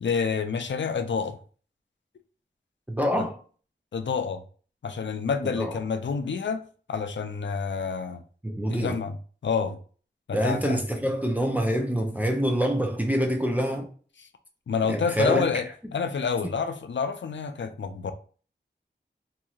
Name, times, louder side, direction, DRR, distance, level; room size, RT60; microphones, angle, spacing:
voice 1, 0.0-1.4 3.2-3.3 3.9-4.4 4.8-6.6 6.9-8.2 8.7-9.2 9.4-9.8 10.3-10.8 14.7-18.1, left 5 dB, 85° left, 0.4 m, -28 dB
voice 2, 2.9-3.4 5.5-5.7 8.4-9.0 10.3-13.9 14.9-15.6, equal, 10° right, 0.5 m, -26 dB
2.9 x 2.6 x 2.3 m
wide cardioid pair, 65°, 19 cm